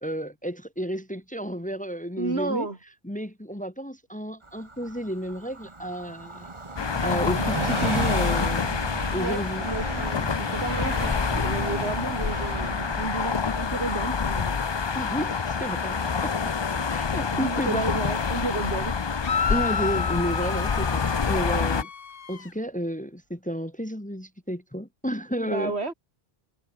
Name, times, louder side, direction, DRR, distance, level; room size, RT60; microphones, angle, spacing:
voice 1, 0.0-2.7 3.0-6.5 7.0-8.7 9.1-9.6 14.9-16.3 16.9-17.9 19.5-21.9 22.3-25.7, equal, 5° left, 1.3 m, -31 dB
voice 2, 2.2-2.8 9.1-14.6 17.3-18.9 25.5-25.9, right 3 dB, 80° right, 3.3 m, -32 dB
Train, 4.4-17.7 18.1-18.2, right 2 dB, 30° right, 1.7 m, -35 dB
sound 1, 6.8-21.8, left 5 dB, 35° left, 0.5 m, -27 dB
sound 2, 19.2-22.5, left 6 dB, 60° left, 1.3 m, -31 dB
omnidirectional pair, 1.1 m